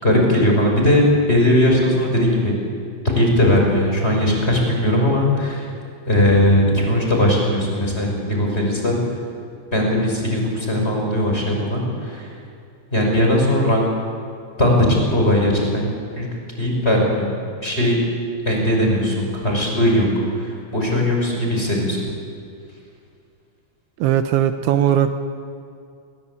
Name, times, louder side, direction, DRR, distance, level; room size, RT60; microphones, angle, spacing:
voice 1, 0.0-2.6 3.1-5.7 6.1-9.0 9.7-12.3 12.9-13.8 14.6-15.8 16.1-16.3 16.6-17.3 17.6-18.0 18.5-22.0, left 1 dB, 15° left, 0 dB, 5.8 m, -18 dB
voice 2, 24.0-25.1, right 10 dB, 80° right, 7 dB, 3.3 m, -18 dB
29.5 x 21.5 x 8.5 m, 2.4 s
omnidirectional pair, 5.5 m